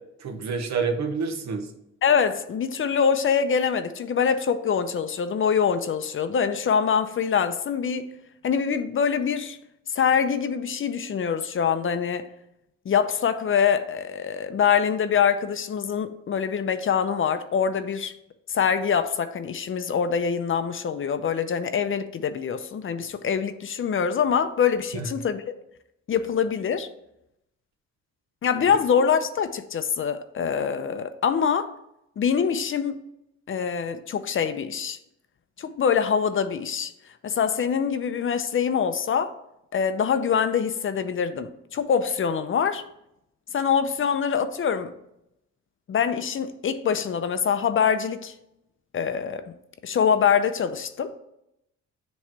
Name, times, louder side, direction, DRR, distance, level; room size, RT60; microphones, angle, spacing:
voice 1, 0.2-1.7 24.9-25.1, right 5 dB, 65° right, 1.2 m, -28 dB
voice 2, 2.0-8.1 8.4-9.6 9.9-12.3 12.9-18.1 18.5-25.5 26.1-26.9 28.4-31.7 32.2-33.0 33.5-35.0 35.6-36.9 37.2-39.3 39.7-42.8 43.5-44.9 45.9-48.3 48.9-49.4 49.8-51.1, left 7 dB, 45° left, 0.6 m, -24 dB
7.2 x 3.2 x 5.9 m
cardioid pair, 90°, 30 cm